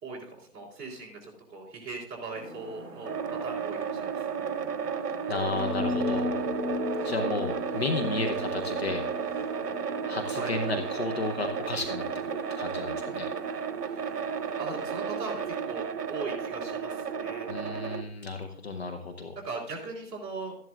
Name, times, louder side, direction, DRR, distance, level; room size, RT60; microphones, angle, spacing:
voice 1, 0.0-3.1 3.4-4.2 10.3-10.6 13.8-14.0 14.6-17.5 19.3-20.6, right 3 dB, 15° right, -7 dB, 3.3 m, -39 dB
sound 1, 2.3-15.5, left 2 dB, 35° right, 4.9 m, -38 dB
sound 2, 3.0-18.0, right 6 dB, 75° right, 1.0 m, -33 dB
voice 2, 5.3-6.3 7.0-9.1 10.1-12.0 12.3-13.3 17.5-19.3, left 3 dB, 40° left, 5 dB, 0.9 m, -33 dB
14.0 x 11.0 x 2.5 m, 0.66 s
hypercardioid pair, 160°, 47 cm